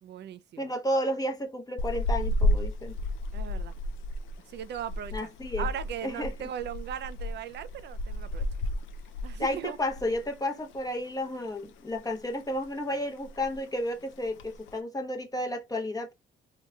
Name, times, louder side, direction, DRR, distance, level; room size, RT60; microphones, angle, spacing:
voice 1, 0.0-0.7 3.3-3.7 4.5-5.3 5.6-8.5 9.2-9.8, right 10 dB, 60° right, 0.4 m, -38 dB
voice 2, 0.6-2.9 5.1-5.7 6.0-6.3 9.4-16.1, left 1 dB, 20° left, 0.7 m, -32 dB
sound 1, 1.8-10.3 10.6-10.8 11.2-12.0 12.3-12.7 13.0-13.1 13.2-13.7 14.2-14.7, left 1 dB, 80° left, 0.5 m, -32 dB
3.2 x 2.9 x 2.3 m
cardioid pair, 90°, 20 cm